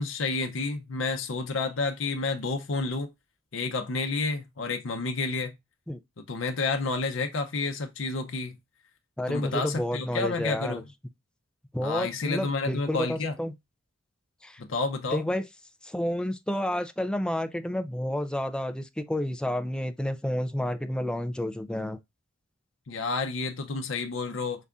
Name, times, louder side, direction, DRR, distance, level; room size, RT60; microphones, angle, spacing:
voice 1, 0.0-3.1 3.5-5.5 6.3-8.6 9.3-10.8 11.8-13.4 14.6-15.3 22.9-24.6, left 3 dB, 75° left, 0.7 m, -30 dB
voice 2, 9.2-10.8 11.7-13.5 14.4-14.6 15.1-15.4 15.8-22.0, left 1 dB, 5° left, 0.4 m, -30 dB
5.5 x 2.5 x 3.5 m
head